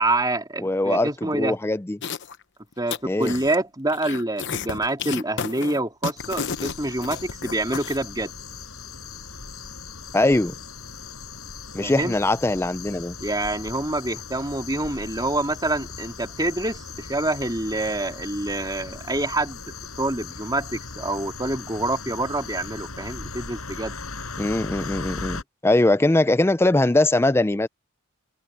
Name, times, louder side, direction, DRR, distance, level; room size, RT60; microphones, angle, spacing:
voice 1, 0.0-1.6 2.8-8.3 11.8-12.2 13.2-19.6 20.0-23.9, right 2 dB, 20° right, 3.4 m, -26 dB
voice 2, 0.6-2.0 3.0-3.3 10.1-10.5 11.7-13.1 24.4-27.7, left 2 dB, 10° left, 0.4 m, -21 dB
sound 1, 2.0-2.4 2.7-3.6 3.9-8.0, left 6 dB, 55° left, 0.9 m, -32 dB
sound 2, 6.2-25.4, left 4 dB, 80° left, 8.0 m, -38 dB
head